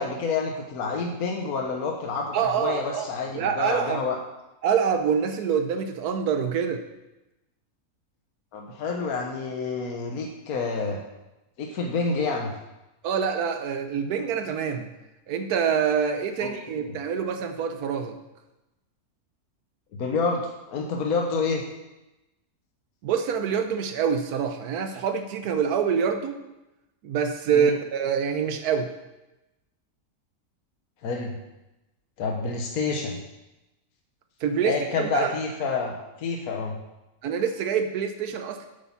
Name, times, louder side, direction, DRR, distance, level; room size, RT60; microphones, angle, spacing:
voice 1, 0.0-4.2 8.5-11.0 11.6-12.5 16.4-16.5 16.8-17.0 19.9-20.4 20.7-21.6 27.5-27.8 31.0-31.4 32.2-33.2 34.6-36.8, left 4 dB, 75° left, 1 dB, 1.5 m, -28 dB
voice 2, 2.3-3.1 3.3-4.1 4.6-6.8 13.0-14.9 15.3-18.2 23.0-26.4 27.0-28.9 34.4-35.3 37.2-38.7, right 7 dB, 90° right, 7 dB, 1.3 m, -26 dB
8.3 x 8.2 x 5.8 m, 0.99 s
omnidirectional pair, 1.6 m